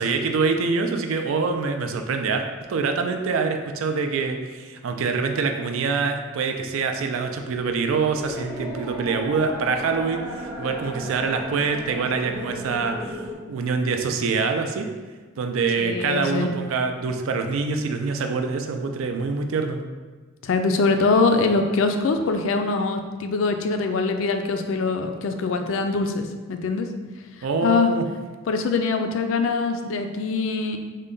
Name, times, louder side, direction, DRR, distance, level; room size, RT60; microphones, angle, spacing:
voice 1, 0.0-14.9 15.4-19.8 27.4-28.0, right 4 dB, 75° right, 5 dB, 0.4 m, -25 dB
sound 1, 7.8-13.3, equal, 10° right, 0.5 m, -35 dB
voice 2, 15.8-16.5 20.4-26.9 27.6-27.9 28.5-30.8, left 4 dB, 65° left, 6 dB, 0.3 m, -23 dB
3.7 x 2.1 x 3.8 m, 1.3 s
head